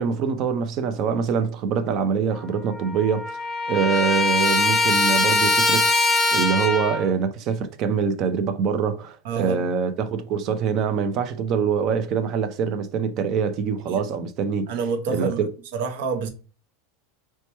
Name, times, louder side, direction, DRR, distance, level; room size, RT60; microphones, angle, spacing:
voice 1, 0.0-3.3 3.7-6.0 6.3-14.7 15.1-15.5, right 6 dB, 35° right, 0.4 m, -24 dB
Trumpet, 2.3-2.4 2.7-7.1, left 3 dB, 10° left, 0.6 m, -22 dB
voice 2, 9.2-9.6 13.9-14.0 14.7-15.4 15.7-16.3, right 5 dB, 65° right, 0.7 m, -27 dB
4.2 x 2.2 x 2.9 m
supercardioid pair, 160°, 0 cm